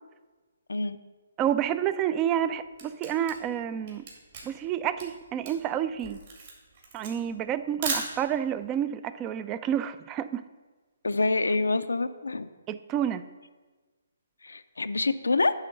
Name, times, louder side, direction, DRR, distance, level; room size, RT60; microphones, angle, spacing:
voice 1, 1.4-4.0 4.4-6.2 6.9-10.4 12.7-13.2, right 10 dB, 20° right, 14 dB, 0.3 m, -29 dB
Camera, 2.3-8.6, right 4 dB, 50° right, 2.3 m, -37 dB
voice 2, 11.0-12.5 14.4-15.5, left 3 dB, 90° left, 11 dB, 0.4 m, -26 dB
9.7 x 3.7 x 6.4 m, 1.3 s
hypercardioid pair, 145°, 0 cm